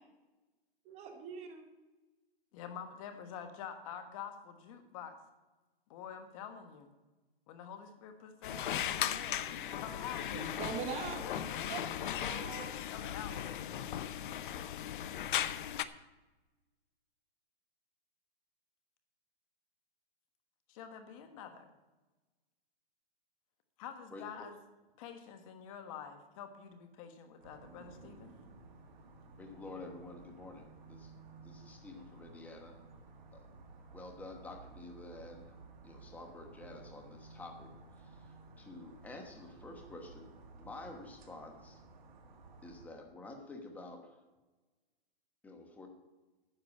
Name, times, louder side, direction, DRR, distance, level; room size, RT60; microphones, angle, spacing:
voice 1, 0.9-1.7 10.3-11.2 11.7-12.7, right 6 dB, 20° right, 5 dB, 1.1 m, -42 dB
voice 2, 2.5-5.1 5.9-6.9 7.5-10.6 11.2-11.8 12.6-13.8 14.7-15.2 20.7-21.7 23.8-24.6 25.0-28.3, left 8 dB, 35° left, 7 dB, 1.3 m, -47 dB
sound 1, 8.4-15.9, left 10 dB, 55° left, 0.7 m, -37 dB
voice 3, 24.1-24.5 29.4-31.1 31.4-32.8 33.3-33.5 33.9-35.6 35.8-37.7 38.0-41.8 42.6-44.2 45.4-45.9, left 2 dB, 5° left, 3 dB, 1.1 m, -49 dB
sound 2, 27.4-42.9, right 3 dB, 50° right, 2.1 m, -55 dB
10.0 x 6.7 x 8.5 m, 1.1 s
hypercardioid pair, 150°, 30 cm